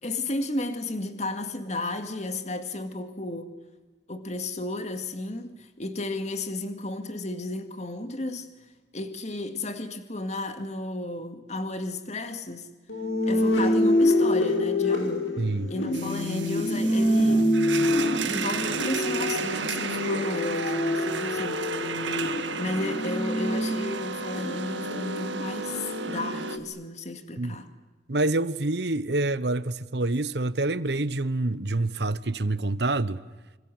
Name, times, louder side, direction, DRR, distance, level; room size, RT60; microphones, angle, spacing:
voice 1, 0.0-3.5 4.1-12.7 13.3-15.3 15.7-17.5 18.2-21.6 22.6-27.7, left 2 dB, 40° left, 2.2 m, -33 dB
sound 1, 12.9-26.6, left 1 dB, 85° left, 5.4 m, -26 dB
voice 2, 15.4-15.7 27.4-27.6 28.1-33.2, right 2 dB, 65° right, 1.1 m, -27 dB
sound 2, 15.9-26.6, right 5 dB, 80° right, 1.8 m, -33 dB
27.0 x 26.5 x 7.9 m
head